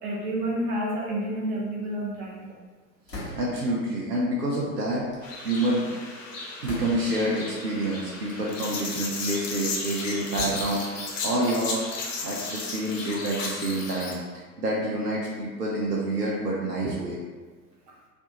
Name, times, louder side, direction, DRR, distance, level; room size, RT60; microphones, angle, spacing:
voice 1, 0.0-2.5, right 1 dB, 45° right, -3 dB, 1.2 m, -29 dB
sound 1, 3.1-3.8 4.7-5.7 6.6-7.3 8.1-8.3 8.8-9.5 10.3-11.0 11.8-13.7, left 1 dB, 85° left, 1.1 m, -41 dB
voice 2, 3.3-5.0 5.4-5.9 6.6-11.8 12.2-17.2, right 1 dB, 75° right, -3 dB, 0.8 m, -28 dB
sound 2, 5.2-14.1, left 3 dB, 50° left, 0.9 m, -34 dB
4.5 x 2.5 x 2.8 m, 1.4 s
figure-of-eight pair, 90°, 48 cm